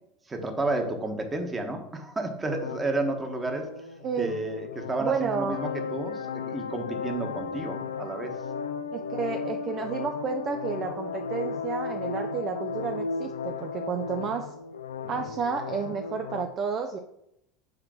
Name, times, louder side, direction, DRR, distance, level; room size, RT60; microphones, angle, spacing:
voice 1, 0.3-3.7 4.2-8.3 15.2-15.3, right 2 dB, 20° right, 4 dB, 1.4 m, -31 dB
sound 1, 2.4-16.4, left 5 dB, 80° left, 0.4 m, -35 dB
voice 2, 4.0-4.4 5.0-5.6 8.9-14.5 15.1-17.0, right 6 dB, 40° right, 5 dB, 0.6 m, -31 dB
4.9 x 4.5 x 6.1 m, 0.81 s
hypercardioid pair, 75°, 0 cm